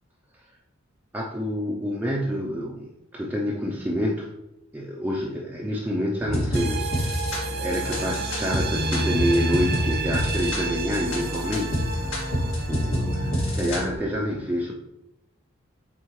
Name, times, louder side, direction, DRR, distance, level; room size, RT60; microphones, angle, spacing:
voice 1, 1.1-4.3 4.7-7.2 7.5-11.9 12.3-12.4 12.7-14.7, equal, 10° right, -2 dB, 0.5 m, -28 dB
sound 1, 6.2-14.0, equal, 65° left, 1.9 m, -27 dB
sound 2, 6.5-13.7, right 5 dB, 50° right, 0.7 m, -33 dB
8.0 x 4.2 x 3.1 m, 0.89 s
head